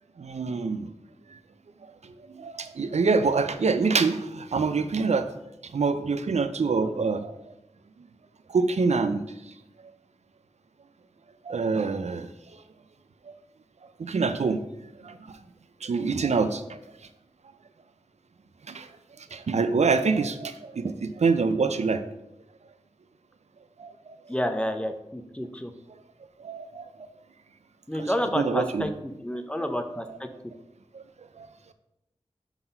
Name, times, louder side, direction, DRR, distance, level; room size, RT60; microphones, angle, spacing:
voice 1, 0.2-0.9 2.4-5.3 5.7-7.3 8.5-9.2 11.5-12.3 14.0-14.6 15.0-15.1 15.8-16.8 18.7-18.9 19.3-22.0 23.8-23.9 26.4-26.8 28.4-28.9 30.9-31.0 31.4-31.5, right 4 dB, 85° right, 10 dB, 0.5 m, -25 dB
voice 2, 24.3-25.7 27.9-30.3, equal, 10° left, 7 dB, 0.7 m, -29 dB
5.9 x 4.0 x 5.3 m, 0.87 s
wide cardioid pair, 70°, 11 cm